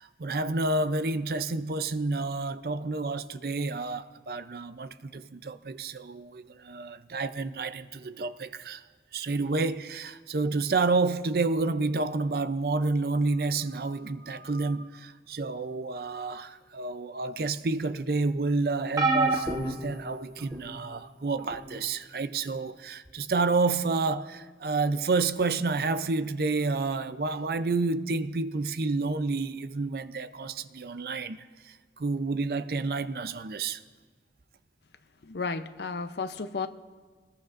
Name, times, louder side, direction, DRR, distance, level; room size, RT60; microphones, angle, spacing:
voice 1, 0.0-8.8 9.1-31.4 32.0-33.8, right 3 dB, 55° right, 0.5 m, -29 dB
sound 1, 19.0-20.8 21.5-21.8 23.1-23.2, right 3 dB, 20° right, 1.0 m, -28 dB
voice 2, 35.3-36.7, left 4 dB, 70° left, 0.7 m, -33 dB
24.0 x 20.5 x 2.6 m
head